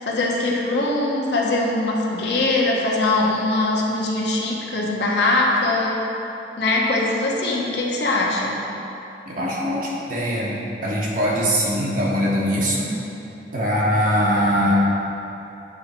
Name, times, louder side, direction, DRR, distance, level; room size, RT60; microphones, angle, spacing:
voice 1, 0.0-6.0 6.6-8.6, left 2 dB, 75° left, -2 dB, 1.0 m, -22 dB
voice 2, 9.2-10.5 10.8-12.9 13.5-14.7, equal, 50° right, -5 dB, 1.4 m, -21 dB
8.4 x 4.0 x 4.3 m, 2.9 s
head